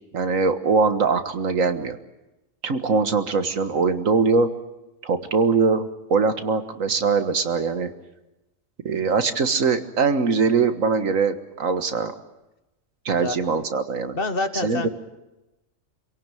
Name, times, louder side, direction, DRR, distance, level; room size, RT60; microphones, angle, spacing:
voice 1, 0.1-2.0 2.6-4.5 5.0-7.9 8.9-12.1 13.1-14.2 14.6-14.9, right 4 dB, 85° right, 9 dB, 1.9 m, -22 dB
voice 2, 14.1-14.9, left 3 dB, 45° left, 9 dB, 1.6 m, -27 dB
27.0 x 17.5 x 9.1 m, 0.98 s
omnidirectional pair, 1.3 m